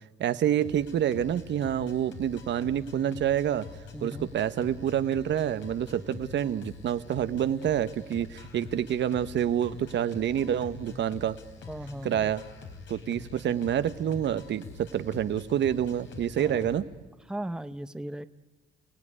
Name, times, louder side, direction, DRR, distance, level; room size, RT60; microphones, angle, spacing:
voice 1, 0.2-3.6 4.0-11.4 12.0-12.4 12.9-16.9, right 10 dB, 65° right, 12 dB, 1.0 m, -28 dB
sound 1, 0.6-16.8, left 5 dB, 70° left, 3.9 m, -45 dB
voice 2, 3.9-4.3 11.7-12.3 16.4-16.6 17.3-18.3, right 1 dB, 5° right, 12 dB, 0.8 m, -37 dB
29.5 x 17.0 x 9.9 m, 1.2 s
cardioid pair, 90°, 20 cm